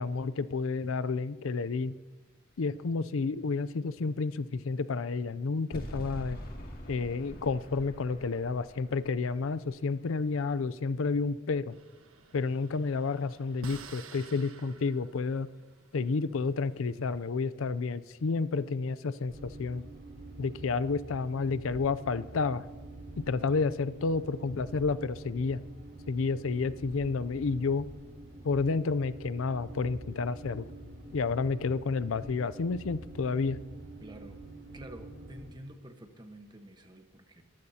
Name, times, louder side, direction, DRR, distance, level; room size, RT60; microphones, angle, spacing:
voice 1, 0.0-2.0 2.6-6.4 6.9-11.8 12.3-15.5 15.9-19.8 20.4-22.7 23.2-25.6 26.1-27.9 28.4-30.7 31.1-33.6, left 4 dB, 80° left, 15 dB, 0.5 m, -30 dB
sound 1, 5.7-10.9, equal, 45° left, 2.3 m, -45 dB
sound 2, 11.7-17.2, right 4 dB, 85° right, 1.3 m, -52 dB
sound 3, 19.3-35.5, right 2 dB, 50° right, 4.4 m, -46 dB
voice 2, 34.0-34.4 34.7-37.4, right 1 dB, 20° right, 6 dB, 1.2 m, -49 dB
22.5 x 15.0 x 2.8 m, 1.3 s
head